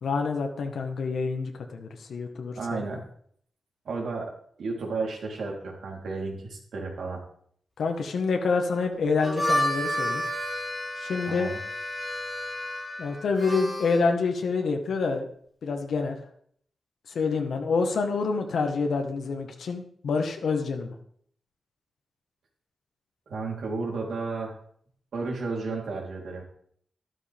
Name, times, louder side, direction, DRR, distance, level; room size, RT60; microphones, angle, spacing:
voice 1, 0.0-3.0 7.8-10.2 11.0-11.5 13.0-15.3 15.6-16.2 17.1-20.9, left 4 dB, 75° left, 3 dB, 1.5 m, -27 dB
voice 2, 2.6-3.0 3.9-4.3 4.6-7.2 11.3-11.6 23.3-24.6 25.1-26.4, right 3 dB, 85° right, -1 dB, 3.6 m, -32 dB
Harmonica, 9.1-14.0, equal, 5° right, 4.2 m, -30 dB
13.0 x 13.0 x 3.6 m, 0.62 s
wide cardioid pair, 155°, 0 cm